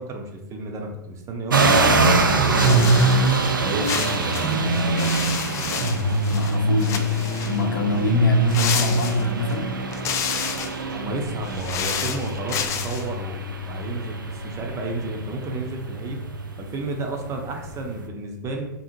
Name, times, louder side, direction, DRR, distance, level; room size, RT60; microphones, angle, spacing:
voice 1, 0.0-3.2 3.5-5.1 10.9-13.4 13.6-16.2 16.6-18.7, right 2 dB, 30° right, 2 dB, 0.5 m, -32 dB
sound 1, 1.5-18.0, right 2 dB, 90° right, 0.4 m, -24 dB
sound 2, 2.5-3.5 3.8-6.5 6.8-7.6 8.5-9.5 9.9-10.8 11.4-13.1, left 7 dB, 25° left, 0.3 m, -30 dB
voice 2, 6.3-7.0 7.4-9.7, left 1 dB, 75° left, 2 dB, 0.6 m, -23 dB
2.7 x 2.6 x 2.6 m, 0.89 s
hypercardioid pair, 100°, 11 cm